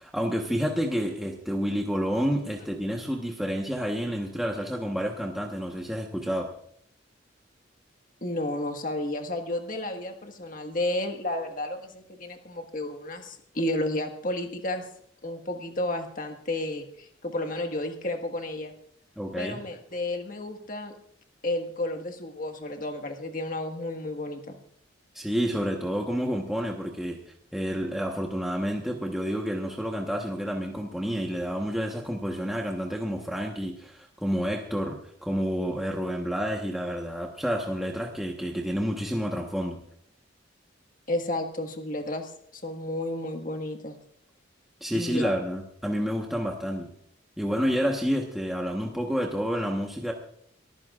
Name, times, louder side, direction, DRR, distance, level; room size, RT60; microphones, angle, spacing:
voice 1, 0.0-6.5 19.2-19.6 25.1-27.2 27.5-39.8 44.8-46.9 47.4-50.1, equal, ahead, 0 dB, 1.2 m, -29 dB
voice 2, 8.2-14.8 15.2-18.7 19.4-20.9 21.4-24.6 41.1-44.0 44.9-45.3, left 1 dB, 45° left, 4 dB, 1.7 m, -32 dB
23.0 x 14.5 x 2.5 m, 0.66 s
head